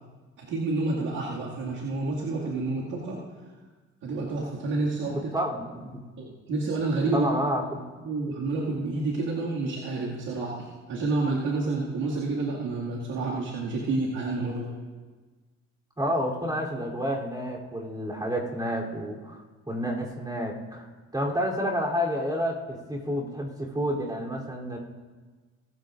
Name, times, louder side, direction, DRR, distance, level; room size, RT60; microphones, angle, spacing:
voice 1, 0.4-3.2 4.0-5.2 6.2-7.3 8.0-14.7, right 3 dB, 90° right, -6 dB, 2.1 m, -29 dB
voice 2, 5.0-6.0 7.1-7.8 16.0-20.9 21.1-24.8, equal, 15° right, -3 dB, 3.2 m, -30 dB
22.5 x 13.5 x 2.5 m, 1.3 s
cardioid pair, 90°, 30 cm